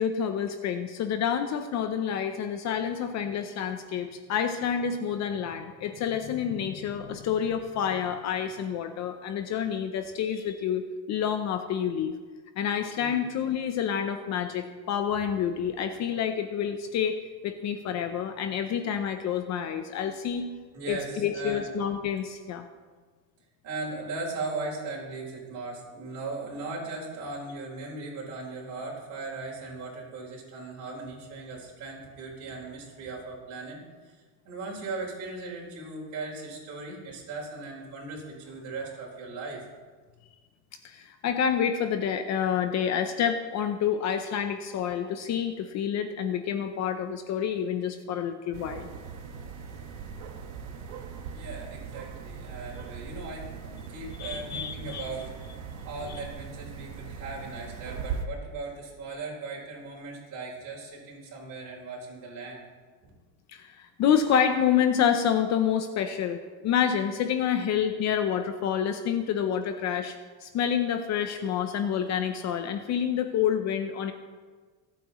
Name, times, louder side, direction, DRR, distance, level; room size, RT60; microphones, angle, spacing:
voice 1, 0.0-12.1 12.6-20.5 20.9-22.7 40.8-48.9 54.2-55.1 56.1-56.2 63.5-74.1, left 8 dB, 40° left, 7 dB, 0.7 m, -28 dB
voice 2, 19.9-20.4 20.7-21.7 23.6-33.8 34.0-39.6 51.3-55.4 55.8-62.6 63.0-63.1, right 3 dB, 40° right, -3 dB, 4.8 m, -38 dB
sound 1, 48.5-58.2, right 6 dB, 70° right, 1.5 m, -40 dB
26.0 x 8.7 x 3.1 m, 1.4 s
cardioid pair, 155°, 45 cm